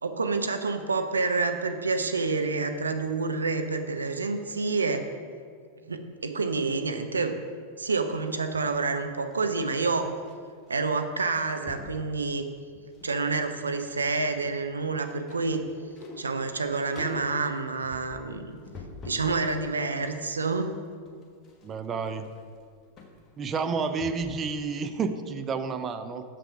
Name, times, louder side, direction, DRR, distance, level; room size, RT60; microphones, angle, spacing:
voice 1, 0.0-5.0 5.8-7.4 7.8-10.1 10.7-12.5 13.0-15.6 16.2-18.6 19.0-20.7, right 4 dB, 75° right, 7 dB, 0.5 m, -28 dB
sound 1, 8.2-10.4 10.6-10.9 11.2-12.0 12.5-13.2 13.5-19.4 19.8-24.4 24.8-24.9, left 3 dB, 25° left, 1.3 m, -46 dB
voice 2, 21.6-22.3 23.4-26.2, right 5 dB, 25° right, 9 dB, 0.5 m, -30 dB
6.8 x 5.8 x 5.8 m, 2.1 s
figure-of-eight pair, 90°, 0 cm